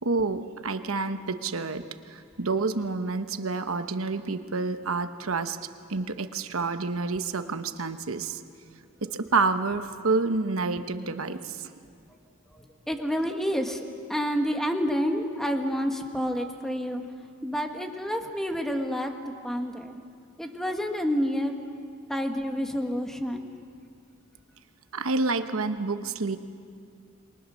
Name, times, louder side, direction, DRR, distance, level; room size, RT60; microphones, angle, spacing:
voice 1, 0.0-1.8 2.4-5.6 5.9-8.4 9.0-11.6 24.9-26.4, right 3 dB, 90° right, 9 dB, 1.0 m, -28 dB
voice 2, 12.5-17.0 17.4-19.1 19.4-20.0 20.4-21.5 22.1-23.5, equal, ahead, 4 dB, 1.5 m, -29 dB
28.0 x 23.5 x 6.3 m, 2.3 s
head